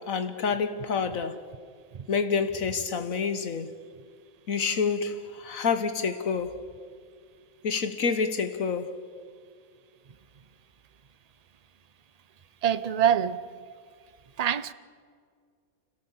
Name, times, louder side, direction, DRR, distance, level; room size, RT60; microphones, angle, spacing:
voice 1, 0.0-1.5 2.1-3.7 4.5-6.6 7.6-8.9, left 5 dB, 70° left, 1.4 m, -28 dB
voice 2, 12.6-13.4 14.4-14.7, right 9 dB, 40° right, 0.5 m, -24 dB
28.5 x 17.0 x 7.2 m
omnidirectional pair, 1.5 m